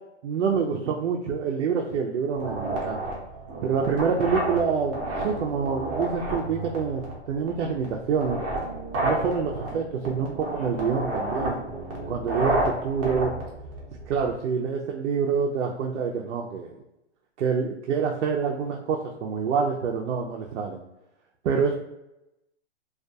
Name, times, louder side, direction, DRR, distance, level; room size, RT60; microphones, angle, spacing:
voice 1, 0.2-3.0 3.6-8.4 9.0-11.6 12.1-13.3 14.1-16.8 17.4-20.8 21.4-21.7, right 6 dB, 80° right, 0 dB, 0.5 m, -26 dB
sound 1, 2.3-14.3, right 1 dB, 25° right, 0.6 m, -31 dB
2.3 x 2.3 x 2.6 m, 0.90 s
hypercardioid pair, 145°, 35 cm